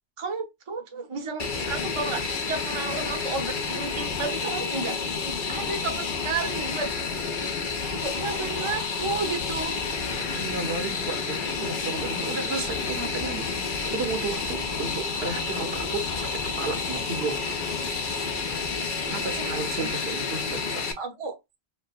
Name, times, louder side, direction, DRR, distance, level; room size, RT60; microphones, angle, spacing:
voice 1, 0.2-6.9 7.8-9.7 19.3-19.9 21.0-21.4, right 4 dB, 35° right, 0.7 m, -33 dB
Fixed-wing aircraft airplane, 1.4-20.9, left 5 dB, 55° left, 0.8 m, -30 dB
voice 2, 10.1-17.4 19.1-20.9, right 4 dB, 75° right, 1.1 m, -33 dB
4.3 x 2.1 x 2.3 m
omnidirectional pair, 1.1 m